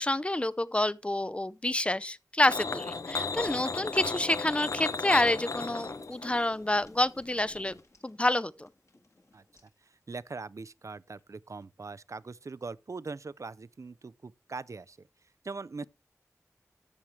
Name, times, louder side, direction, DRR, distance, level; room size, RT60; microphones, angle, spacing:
voice 1, 0.0-7.8 8.0-8.7, left 1 dB, 20° left, 0.5 m, -28 dB
sound 1, 2.5-7.8, left 4 dB, 70° left, 0.9 m, -35 dB
sound 2, 3.0-9.8 11.1-11.2 11.6-11.7, left 2 dB, 55° left, 1.8 m, -56 dB
voice 2, 9.9-15.1 15.4-15.8, right 4 dB, 60° right, 0.5 m, -41 dB
13.5 x 7.2 x 3.2 m
wide cardioid pair, 55°, 6 cm